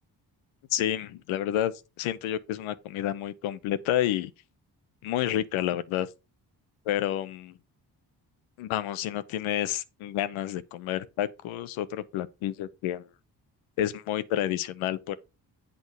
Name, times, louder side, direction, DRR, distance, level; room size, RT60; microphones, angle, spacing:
voice 1, 0.7-1.7 2.0-4.3 5.0-6.1 6.9-7.5 8.6-13.1 13.8-15.2, left 12 dB, 85° left, 0.8 m, -29 dB
8.4 x 3.8 x 6.1 m
supercardioid pair, 45°, 47 cm